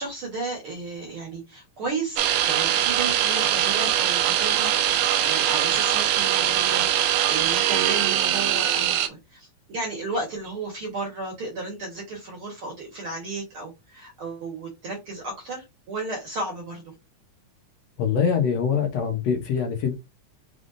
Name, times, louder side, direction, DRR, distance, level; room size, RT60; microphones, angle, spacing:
voice 1, 0.0-16.8, right 2 dB, 50° right, 1.7 m, -34 dB
sound 1, 2.2-9.1, right 11 dB, 85° right, 2.2 m, -22 dB
voice 2, 18.0-19.9, left 7 dB, 70° left, 1.7 m, -23 dB
5.1 x 3.4 x 2.5 m
omnidirectional pair, 3.8 m